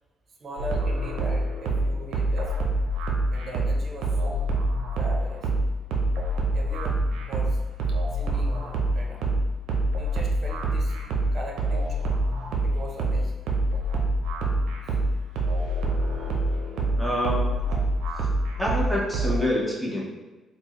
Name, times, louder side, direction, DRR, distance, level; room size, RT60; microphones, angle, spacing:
voice 1, 0.4-2.7 3.3-4.4 5.0-5.5 6.5-7.0 7.3-7.6 7.9-9.2 10.0-11.0 11.3-12.1 12.6-13.5 14.8-15.3 15.6-15.9 16.3-16.4, right 2 dB, 45° right, 0 dB, 0.8 m, -40 dB
sound 1, 0.6-19.4, right 1 dB, 85° right, 0.5 m, -26 dB
voice 2, 17.0-17.5 18.6-20.0, equal, ahead, -5 dB, 0.9 m, -26 dB
4.2 x 2.0 x 3.0 m, 1.1 s
cardioid pair, 90°, 0 cm